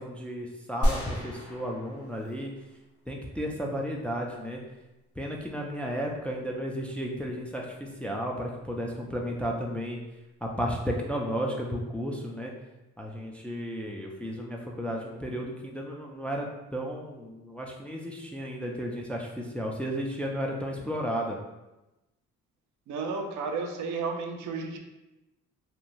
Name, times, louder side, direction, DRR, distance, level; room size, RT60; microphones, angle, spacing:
voice 1, 0.0-2.5 3.1-4.6 5.2-10.0 10.4-12.5 13.0-16.5 16.7-21.4, equal, 5° left, -1 dB, 0.3 m, -33 dB
sound 1, 0.8-2.8 3.1-3.2, equal, 75° left, 0.8 m, -31 dB
voice 2, 22.9-24.8, right 4 dB, 75° right, 4 dB, 0.5 m, -32 dB
3.0 x 2.3 x 2.5 m, 1.0 s
cardioid pair, 90°, 30 cm